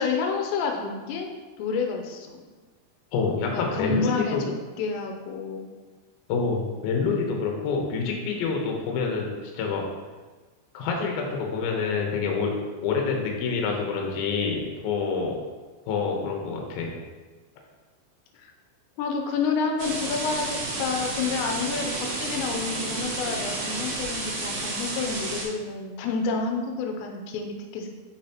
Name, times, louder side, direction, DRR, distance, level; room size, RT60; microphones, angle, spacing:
voice 1, 0.0-1.3 1.6-2.4 3.3-4.4 4.8-5.7 18.4-18.5 19.0-27.9, left 4 dB, 90° left, 3 dB, 2.9 m, -29 dB
voice 2, 3.1-4.4 6.3-9.8 10.7-12.5 12.8-15.4 15.9-16.9, left 5 dB, 70° left, 1 dB, 2.5 m, -27 dB
sound 1, 19.8-25.4, right 2 dB, 65° right, 2.7 m, -31 dB
6.9 x 6.0 x 2.9 m, 1.3 s
omnidirectional pair, 4.9 m